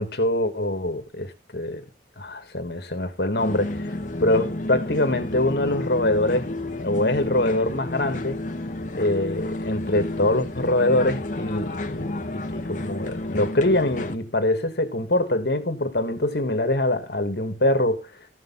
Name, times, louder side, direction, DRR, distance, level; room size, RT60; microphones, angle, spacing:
voice 1, 0.0-1.8 2.2-6.5 6.8-8.4 8.9-18.1, left 1 dB, 65° left, 1.9 m, -24 dB
sound 1, 3.4-14.1, left 1 dB, 45° left, 1.2 m, -31 dB
14.5 x 6.8 x 4.1 m
head